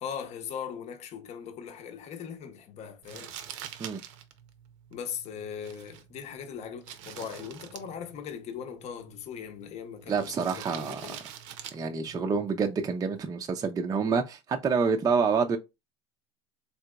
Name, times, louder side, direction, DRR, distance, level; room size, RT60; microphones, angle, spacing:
voice 1, 0.0-3.6 4.9-11.2, left 8 dB, 45° left, 0.8 m, -39 dB
Crumpling crinkling, 3.0-13.2, right 10 dB, 75° right, 0.7 m, -46 dB
voice 2, 10.1-11.0 11.7-15.6, right 5 dB, 20° right, 0.5 m, -27 dB
3.7 x 2.8 x 2.2 m
supercardioid pair, 100°, 16 cm